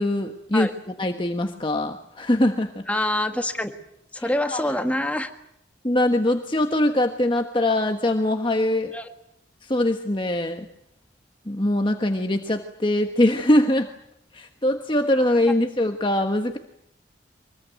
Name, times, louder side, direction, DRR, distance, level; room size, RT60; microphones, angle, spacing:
voice 1, 0.0-2.9 4.5-4.7 5.8-8.9 9.6-10.6 11.5-13.9 14.3-16.6, left 1 dB, 25° left, 5 dB, 1.3 m, -22 dB
voice 2, 2.9-3.7 4.1-5.3 8.9-9.1, left 1 dB, 5° left, 6 dB, 1.6 m, -25 dB
24.5 x 21.0 x 9.2 m, 0.77 s
head